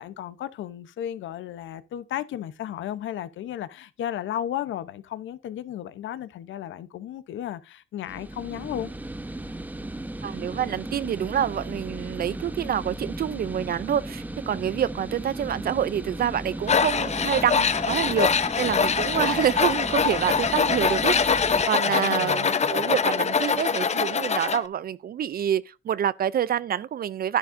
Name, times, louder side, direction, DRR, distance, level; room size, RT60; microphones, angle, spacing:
voice 1, 0.0-8.9 21.8-22.5, left 11 dB, 75° left, 0.9 m, -34 dB
sound 1, 8.1-21.7, right 1 dB, 10° right, 0.8 m, -36 dB
voice 2, 10.2-27.4, right 9 dB, 50° right, 0.5 m, -27 dB
Tools, 16.7-24.6, left 6 dB, 35° left, 0.7 m, -24 dB
11.0 x 10.0 x 2.6 m
cardioid pair, 90°, 20 cm